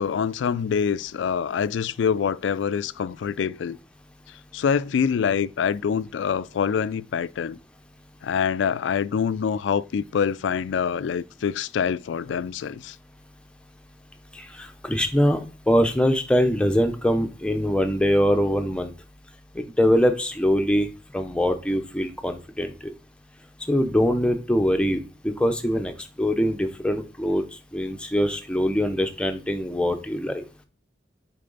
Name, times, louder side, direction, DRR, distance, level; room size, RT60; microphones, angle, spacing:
voice 1, 0.0-3.8 4.5-7.6 8.2-13.0, left 7 dB, 85° left, 0.3 m, -25 dB
voice 2, 14.3-18.9 19.5-20.9 21.1-22.7 23.7-25.9 26.2-27.4 27.7-30.4, equal, 5° left, 0.6 m, -23 dB
6.7 x 4.6 x 3.9 m
head